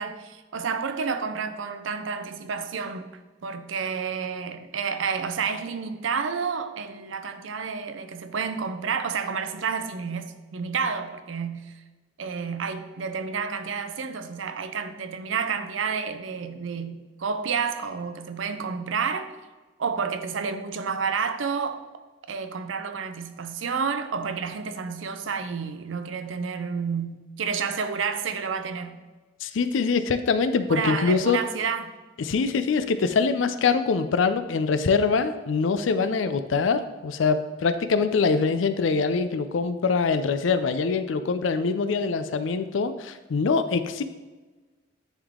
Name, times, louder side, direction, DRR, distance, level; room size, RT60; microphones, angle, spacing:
voice 1, 0.0-3.1 3.4-11.7 12.2-19.3 19.8-21.8 22.3-29.0 30.7-31.9, right 5 dB, 80° right, 0.6 m, -30 dB
voice 2, 29.4-31.4 32.2-44.0, left 5 dB, 80° left, 0.4 m, -24 dB
9.8 x 3.6 x 3.6 m
head